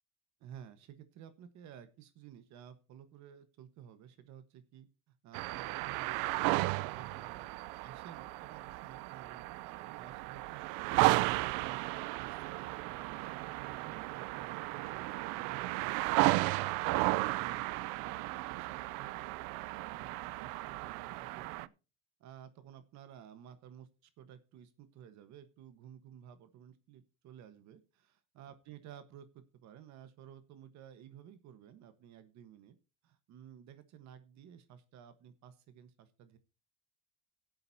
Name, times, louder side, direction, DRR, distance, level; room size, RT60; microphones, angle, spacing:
voice 1, 0.4-11.2 11.6-15.9 16.3-21.7 22.2-32.8 33.0-36.4, right 9 dB, 65° right, 11 dB, 1.3 m, -54 dB
sound 1, 5.3-21.7, right 20 dB, 90° right, 0.5 m, -34 dB
18.0 x 8.0 x 2.8 m, 0.31 s
cardioid pair, 125°, 31 cm